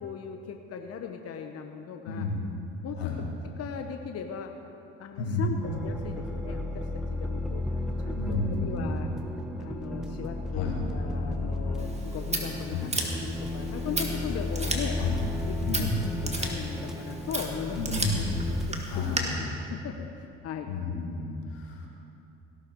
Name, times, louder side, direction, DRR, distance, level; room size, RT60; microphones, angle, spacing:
voice 1, 0.0-2.3 2.8-3.1 3.4-4.5 5.0-7.6 8.0-9.1 9.6-15.0 15.4-15.9 16.2-17.8 18.1-18.2 18.7-20.7, left 7 dB, 50° left, 5 dB, 1.0 m, -38 dB
voice 2, 2.1-2.5 3.0-3.2 5.2-5.7 8.2-9.0 10.5-10.8 12.7-13.0 15.0-15.2 15.6-16.2 17.8-18.5 18.9-19.5 20.7-21.9, left 3 dB, 90° left, -1 dB, 2.2 m, -31 dB
sound 1, 5.6-18.7, left 2 dB, ahead, 1.4 m, -33 dB
Scissors, 11.8-19.2, right 2 dB, 20° right, 2.3 m, -35 dB
17.0 x 12.0 x 4.6 m, 2.8 s
hypercardioid pair, 65°, 31 cm